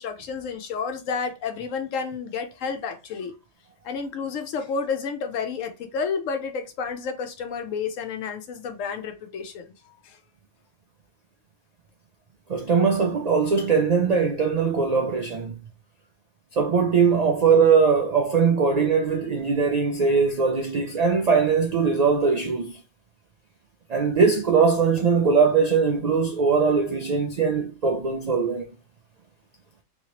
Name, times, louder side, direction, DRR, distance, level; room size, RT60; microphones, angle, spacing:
voice 1, 0.0-3.3 3.8-10.2, left 5 dB, 85° left, 1.0 m, -31 dB
voice 2, 12.5-15.6 16.5-22.8 23.9-28.7, right 5 dB, 80° right, 0.3 m, -21 dB
3.1 x 2.8 x 3.0 m
omnidirectional pair, 1.3 m